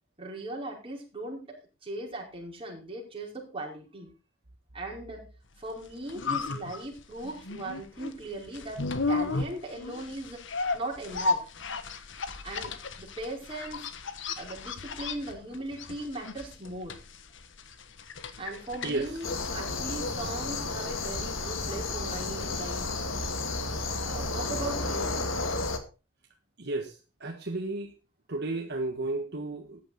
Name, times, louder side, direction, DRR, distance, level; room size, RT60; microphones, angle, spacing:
voice 1, 0.2-4.1 4.7-5.3 5.6-10.4 10.7-11.4 12.4-13.9 14.4-17.0 18.4-22.9 24.0-25.2, right 2 dB, 30° right, -1 dB, 4.9 m, -38 dB
sound 1, 5.7-23.7 24.0-24.1, left 3 dB, 65° left, 1.4 m, -35 dB
sound 2, 19.2-25.8, left 3 dB, 85° left, 2.1 m, -32 dB
voice 2, 26.6-26.9 27.2-27.9 28.3-29.8, right 2 dB, 60° right, 3 dB, 1.6 m, -32 dB
14.0 x 10.0 x 4.2 m, 0.32 s
head